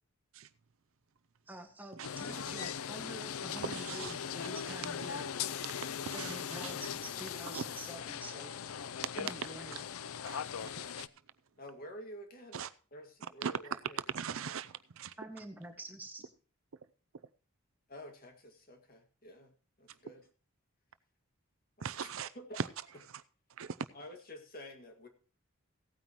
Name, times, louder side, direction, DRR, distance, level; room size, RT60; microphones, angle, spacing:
voice 1, 1.5-5.3 6.1-8.5 9.1-9.9 15.2-16.2, right 1 dB, 10° right, 1.7 m, -47 dB
sound 1, 2.0-11.1, left 8 dB, 75° left, 0.5 m, -40 dB
voice 2, 3.7-4.1 6.2-6.3 6.6-6.7 7.5-7.6 10.3-10.4 11.0-11.1 12.5-12.7 13.4-13.5 14.1-15.1 21.8-22.3 23.6-23.7, right 7 dB, 70° right, 0.6 m, -40 dB
voice 3, 11.6-12.6 12.9-14.1 17.9-19.5 19.8-20.3 21.8-22.6 23.9-25.1, equal, 40° left, 2.0 m, -50 dB
16.5 x 9.2 x 3.0 m
head